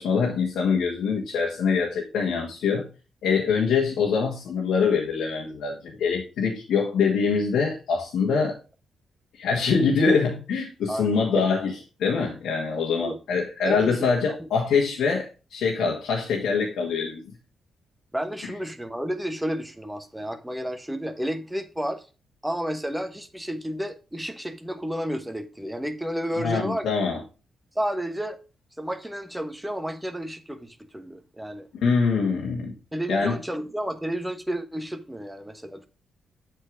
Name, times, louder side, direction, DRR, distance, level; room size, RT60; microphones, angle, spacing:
voice 1, 0.0-2.9 3.2-8.6 9.3-17.3 18.4-18.5 26.4-27.2 31.8-32.7 33.1-33.4, left 5 dB, 85° left, 1.7 m, -24 dB
voice 2, 10.9-11.5 13.0-13.2 13.6-14.0 14.3-14.5 18.1-22.1 22.4-26.9 27.7-28.4 28.8-31.7 32.9-35.9, equal, 5° right, 1.3 m, -31 dB
7.9 x 4.4 x 5.1 m
cardioid pair, 65°, 0 cm